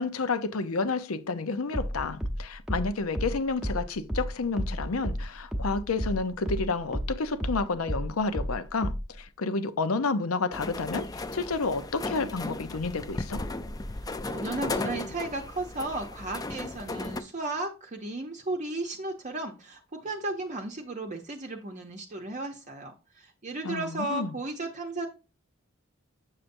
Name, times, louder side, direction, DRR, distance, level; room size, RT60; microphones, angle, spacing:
voice 1, 0.0-13.4 23.6-24.3, left 3 dB, 85° left, 0.7 m, -30 dB
sound 1, 1.7-6.7 6.9-9.2, equal, ahead, 1.0 m, -31 dB
sound 2, 10.5-17.2, left 2 dB, 20° left, 0.4 m, -35 dB
voice 2, 13.9-25.1, right 2 dB, 35° right, 0.7 m, -35 dB
7.3 x 6.6 x 2.6 m
head